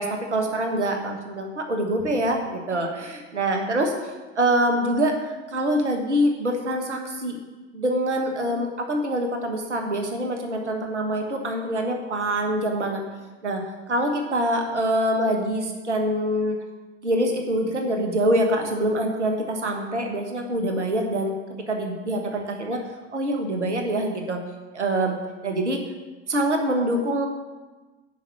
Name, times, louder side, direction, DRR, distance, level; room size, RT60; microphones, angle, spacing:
voice 1, 0.0-7.4 7.7-13.0 13.4-13.6 13.9-16.6 17.0-21.3 21.7-22.8 23.1-24.4 24.7-25.1 25.4-25.8 26.3-27.3, right 1 dB, 85° right, 3 dB, 1.4 m, -25 dB
11.0 x 5.3 x 7.0 m, 1.2 s
figure-of-eight pair, 75°, 34 cm